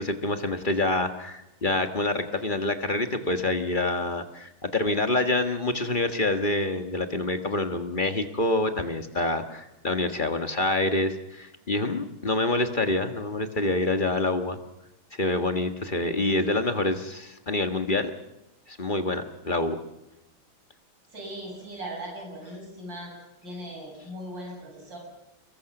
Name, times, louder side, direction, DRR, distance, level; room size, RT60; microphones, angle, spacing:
voice 1, 0.0-14.6 15.2-18.1 18.7-19.8, left 2 dB, 25° left, 7 dB, 1.4 m, -26 dB
voice 2, 21.1-23.1 23.4-25.0, right 1 dB, 60° right, 0 dB, 8.6 m, -39 dB
28.0 x 22.0 x 6.0 m, 0.91 s
omnidirectional pair, 2.2 m